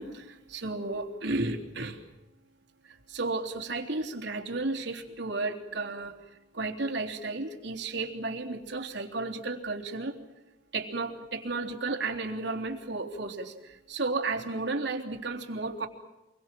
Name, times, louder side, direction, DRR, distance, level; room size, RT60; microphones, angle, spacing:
voice 1, 0.0-2.0 3.1-6.1 6.5-10.2 10.7-15.9, right 3 dB, 65° right, 3 dB, 3.5 m, -33 dB
27.5 x 22.5 x 7.7 m, 1.0 s
head